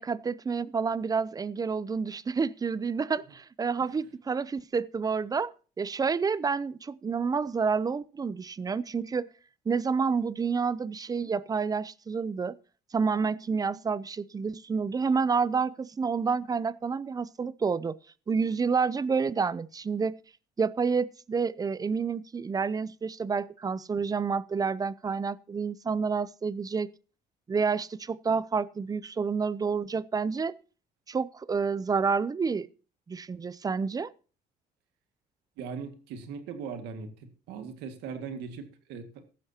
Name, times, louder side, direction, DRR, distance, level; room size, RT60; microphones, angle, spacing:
voice 1, 0.0-5.5 5.8-9.3 9.7-12.6 12.9-18.0 18.3-20.2 20.6-26.9 27.5-30.5 31.1-32.7 33.1-34.1, right 5 dB, 20° right, 0.5 m, -29 dB
voice 2, 35.6-39.2, right 5 dB, 90° right, 2.0 m, -39 dB
15.5 x 12.5 x 2.8 m
cardioid pair, 110°, 17 cm